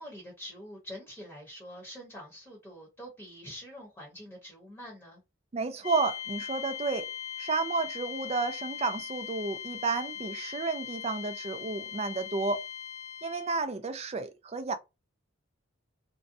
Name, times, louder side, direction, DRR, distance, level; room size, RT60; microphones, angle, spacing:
voice 1, 0.0-5.2, equal, 10° left, 0.9 m, -45 dB
voice 2, 5.5-7.1 7.4-12.6 13.2-14.8, right 4 dB, 30° right, 0.4 m, -31 dB
sound 1, 5.8-13.6, left 10 dB, 90° left, 0.4 m, -40 dB
2.6 x 2.1 x 2.6 m
head